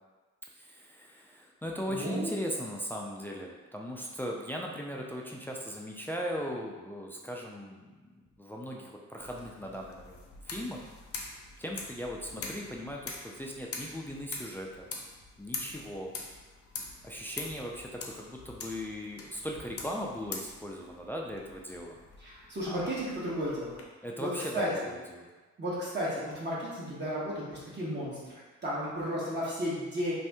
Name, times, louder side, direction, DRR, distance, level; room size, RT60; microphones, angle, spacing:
voice 1, 0.5-8.1 8.4-10.2 10.5-10.9 11.6-14.9 15.4-16.1 17.0-22.0 22.6-22.9 24.0-25.3, equal, 5° left, -1 dB, 0.3 m, -38 dB
voice 2, 1.9-2.4 22.2-23.8 24.2-24.3 24.5-24.9 25.6-30.2, equal, 35° right, -7 dB, 1.1 m, -34 dB
sound 1, 9.2-23.8, left 4 dB, 50° left, 0.6 m, -44 dB
2.6 x 2.6 x 3.4 m, 1.3 s
cardioid pair, 90°, 30 cm